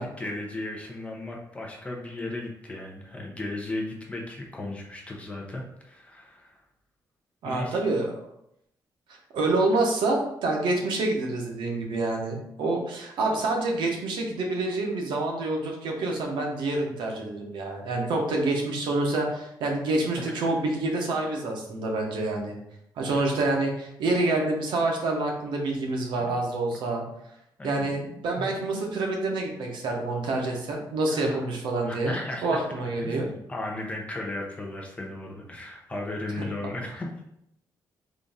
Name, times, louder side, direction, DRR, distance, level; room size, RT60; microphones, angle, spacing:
voice 1, 0.0-6.6 7.4-7.8 23.1-23.2 26.3-26.4 27.6-28.9 31.1-31.4 31.9-32.6 33.0-37.3, left 2 dB, 15° left, 0 dB, 0.6 m, -36 dB
voice 2, 7.4-8.1 9.3-22.6 23.0-27.0 27.6-33.3 36.4-36.5, right 2 dB, 80° right, 1 dB, 0.8 m, -27 dB
3.9 x 2.5 x 3.5 m, 0.78 s
wide cardioid pair, 170°, 8 cm